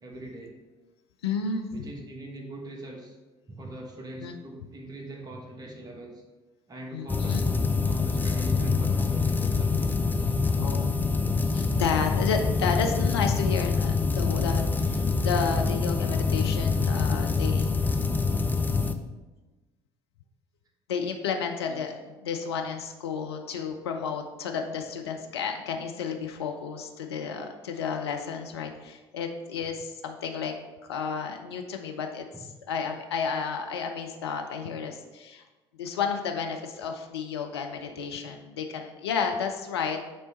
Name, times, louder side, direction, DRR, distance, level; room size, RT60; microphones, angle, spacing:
voice 1, 0.0-0.5 1.7-3.2 3.5-6.1 6.7-10.3 11.5-11.6 21.7-21.8 32.3-32.5, right 1 dB, 30° right, 1 dB, 1.3 m, -42 dB
voice 2, 1.2-1.7 4.2-4.3 6.9-7.4 10.6-10.9 11.5-17.7 20.9-30.5 30.9-35.4 35.8-40.0, left 6 dB, 75° left, 4 dB, 0.5 m, -32 dB
sound 1, 7.1-18.9, left 4 dB, 15° left, 0.5 m, -25 dB
8.5 x 3.3 x 4.1 m, 1.1 s
figure-of-eight pair, 50°, 14 cm